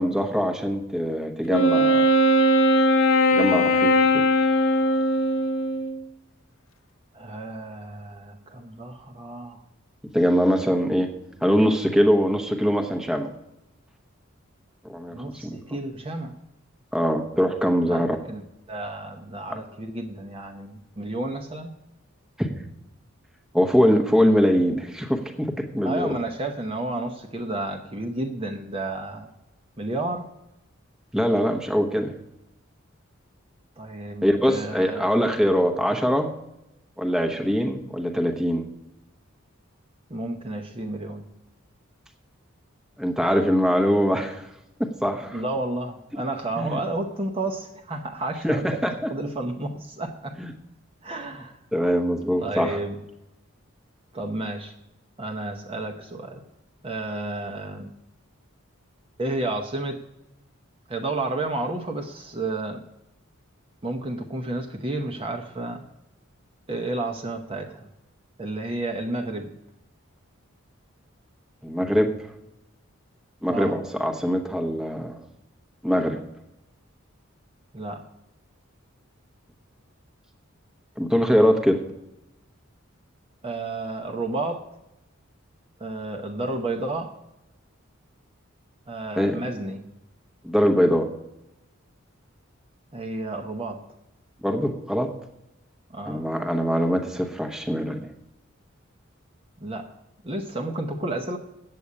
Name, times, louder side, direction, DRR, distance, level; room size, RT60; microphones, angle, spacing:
voice 1, 0.0-2.0 3.3-3.9 10.1-11.1 11.4-13.3 14.9-15.1 15.4-15.6 16.9-18.2 19.5-19.6 22.4-22.5 23.5-26.1 31.1-32.1 34.2-36.3 37.0-38.6 43.0-44.5 44.8-45.4 46.6-46.8 48.4-48.9 50.4-50.5 51.7-52.8 71.6-72.1 73.4-75.2 75.8-76.2 81.0-81.8 89.2-89.4 90.4-91.1 94.4-95.1 96.1-98.1, equal, 5° right, 3 dB, 1.0 m, -22 dB
Wind instrument woodwind instrument, 1.5-6.0, equal, 70° left, 0.9 m, -20 dB
voice 2, 7.1-9.6 15.1-16.4 17.9-21.7 25.8-29.3 29.8-30.3 33.8-35.2 40.1-41.3 45.3-48.8 49.1-50.4 51.0-51.6 52.4-53.0 54.1-54.7 55.2-56.4 56.8-57.9 59.2-60.0 60.9-62.8 63.8-65.8 66.7-67.9 68.4-69.5 73.5-73.8 77.7-78.0 83.4-84.6 85.8-87.1 88.9-89.8 92.9-93.8 95.9-96.3 99.6-99.9 100.2-101.4, right 2 dB, 25° right, 3 dB, 0.8 m, -31 dB
8.2 x 7.8 x 8.5 m, 0.90 s
head